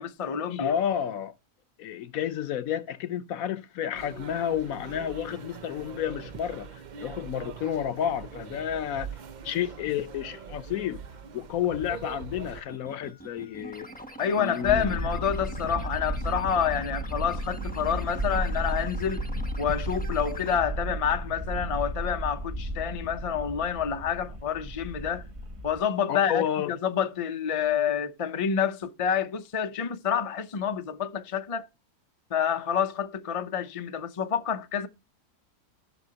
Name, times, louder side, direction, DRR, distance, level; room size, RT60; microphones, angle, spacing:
voice 1, 0.0-0.7 14.2-19.2 19.6-25.3 25.6-31.7 32.3-34.9, left 8 dB, 45° left, 0.4 m, -28 dB
voice 2, 0.6-1.3 1.8-6.7 7.0-9.1 9.4-11.0 11.3-13.9 14.3-15.0 26.1-26.7, left 10 dB, 70° left, 1.1 m, -30 dB
sound 1, 3.9-12.6, right 6 dB, 80° right, 0.4 m, -42 dB
sound 2, 12.6-20.6, right 1 dB, 10° left, 0.6 m, -45 dB
sound 3, 14.6-25.8, right 1 dB, 25° right, 0.9 m, -33 dB
15.0 x 6.1 x 2.8 m
omnidirectional pair, 1.6 m